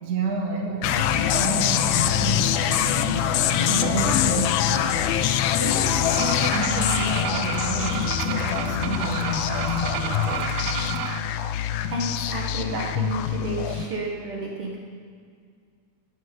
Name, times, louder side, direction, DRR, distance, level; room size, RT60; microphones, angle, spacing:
voice 1, 0.0-4.9 5.6-11.0, right 3 dB, 40° right, 0 dB, 1.6 m, -31 dB
sound 1, 0.8-13.9, left 10 dB, 80° left, 1.5 m, -24 dB
sound 2, 0.9-10.9, left 1 dB, 50° left, 2.0 m, -37 dB
voice 2, 4.1-4.4 11.9-14.8, right 1 dB, 55° right, -2 dB, 2.0 m, -31 dB
sound 3, 6.0-11.2, right 9 dB, 75° right, 1.7 m, -31 dB
17.0 x 8.2 x 5.1 m, 2.1 s
omnidirectional pair, 3.3 m